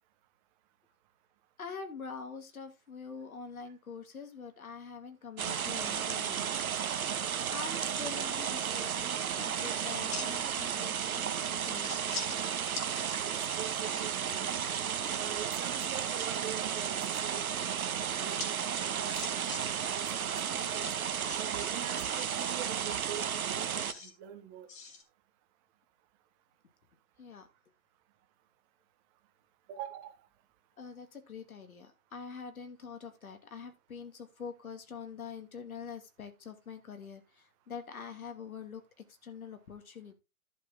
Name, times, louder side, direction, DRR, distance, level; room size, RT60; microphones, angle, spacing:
voice 1, 1.6-6.5 6.9-7.2 7.5-11.9 27.2-27.5 30.8-40.1, left 6 dB, 80° left, 7 dB, 2.6 m, -45 dB
sound 1, 5.4-23.9, right 8 dB, 80° right, 1.2 m, -33 dB
sound 2, 10.1-10.6 10.9-11.0 11.4-12.4 12.7-12.9 13.3-14.2 16.3-16.9 18.4-18.5 18.8-19.6 19.9-20.0 20.8-22.2 22.7-24.1 24.7-25.0, left 4 dB, 15° left, 1.7 m, -43 dB
voice 2, 13.6-14.5 15.1-20.9 21.3-24.7 29.7-30.2, right 10 dB, 25° right, 7 dB, 1.4 m, -45 dB
11.0 x 7.0 x 3.6 m, 0.25 s
hypercardioid pair, 145°, 42 cm